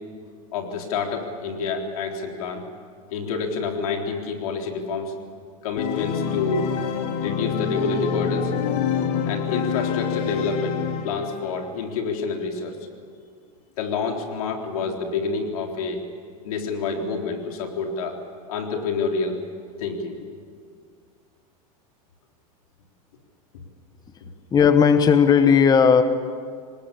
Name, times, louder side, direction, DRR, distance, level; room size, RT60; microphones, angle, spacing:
voice 1, 0.5-2.7 3.1-5.1 5.6-6.7 7.2-8.5 9.3-12.8 13.8-16.0 16.4-18.2 18.5-19.4 19.8-20.2, left 4 dB, 85° left, 2 dB, 3.9 m, -28 dB
Organ, 5.8-11.5, left 7 dB, 60° left, 2.4 m, -26 dB
voice 2, 24.5-26.0, left 6 dB, 20° left, 10 dB, 1.1 m, -15 dB
25.5 x 20.0 x 8.5 m, 2.1 s
supercardioid pair, 125°, 18 cm